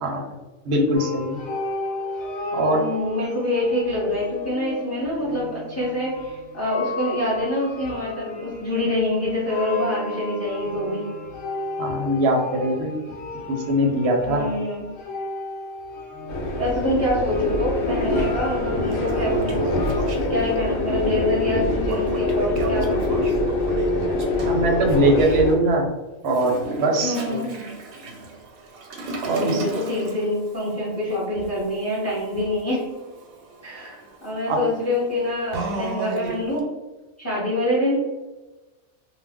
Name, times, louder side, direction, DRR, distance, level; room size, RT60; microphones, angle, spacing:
voice 1, 0.7-1.4 2.5-2.8 11.8-12.9 13.7-14.5 24.4-25.9 26.2-26.5 26.8-27.4 29.3-29.6 34.5-34.6, right 1 dB, 60° right, 1 dB, 0.7 m, -21 dB
sound 1, 0.9-20.0, left 2 dB, 60° left, 0.8 m, -34 dB
voice 2, 2.7-11.0 14.2-14.8 16.6-19.6 20.3-23.8 27.0-27.5 29.0-32.9 33.6-36.7 37.2-38.0, left 1 dB, 15° left, -6 dB, 0.6 m, -26 dB
sound 2, 16.3-25.6, left 2 dB, 80° left, 1.0 m, -24 dB
Toilet flush, 18.1-18.2 18.7-20.6 21.8-25.4 26.3-36.6, right 3 dB, 85° right, 1.0 m, -34 dB
2.4 x 2.1 x 3.5 m, 1.2 s
omnidirectional pair, 1.4 m